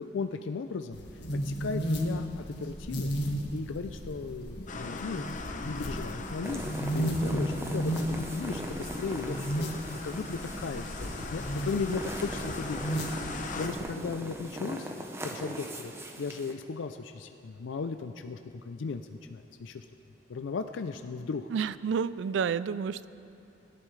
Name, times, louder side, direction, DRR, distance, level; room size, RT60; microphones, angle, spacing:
voice 1, 0.0-3.2 3.5-6.6 6.9-12.9 13.2-14.9 15.2-15.9 16.2-19.9 20.3-21.5, left 4 dB, 85° left, 7 dB, 0.4 m, -36 dB
sound 1, 0.9-13.8, equal, 65° left, 1.6 m, -34 dB
sound 2, 4.7-13.7, left 4 dB, 45° left, 0.7 m, -41 dB
sound 3, 6.4-16.5, right 1 dB, 15° right, 0.8 m, -40 dB
voice 2, 21.5-23.1, right 6 dB, 75° right, 16 dB, 0.3 m, -30 dB
20.0 x 11.0 x 3.2 m, 2.7 s
head